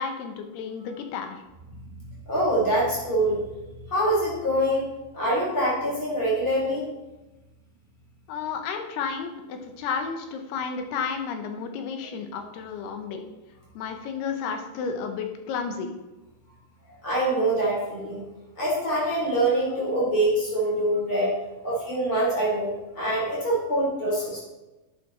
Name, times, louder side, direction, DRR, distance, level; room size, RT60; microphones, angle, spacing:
voice 1, 0.0-1.4 8.3-13.2 13.8-15.9, left 6 dB, 85° left, 5 dB, 3.2 m, -32 dB
voice 2, 2.3-3.4 3.9-4.9 5.1-6.8 17.0-18.2 18.6-21.3 21.6-24.4, right 1 dB, 35° left, -6 dB, 4.9 m, -24 dB
11.5 x 8.4 x 4.3 m, 1.1 s
omnidirectional pair, 4.5 m